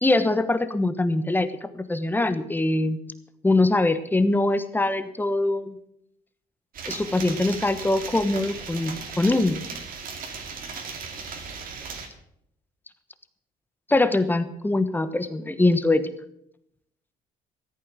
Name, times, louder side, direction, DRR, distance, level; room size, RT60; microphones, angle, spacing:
voice 1, 0.0-3.0 3.4-5.8 6.9-9.6 13.9-16.1, left 2 dB, 10° left, 11 dB, 1.1 m, -23 dB
sound 1, 6.7-12.1, right 5 dB, 55° right, 2.7 m, -37 dB
14.5 x 8.7 x 7.4 m, 0.73 s
cardioid pair, 110°, 17 cm